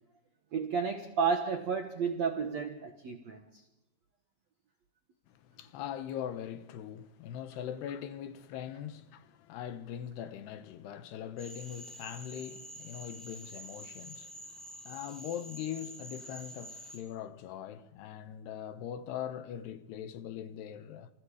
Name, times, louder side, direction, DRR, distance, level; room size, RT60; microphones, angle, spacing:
voice 1, 0.5-3.4, right 6 dB, 65° right, 1.7 m, -32 dB
voice 2, 5.3-21.1, left 9 dB, 75° left, 3.0 m, -41 dB
Cricket / Frog, 11.4-17.0, equal, ahead, 5.4 m, -48 dB
29.5 x 27.0 x 5.0 m
omnidirectional pair, 5.1 m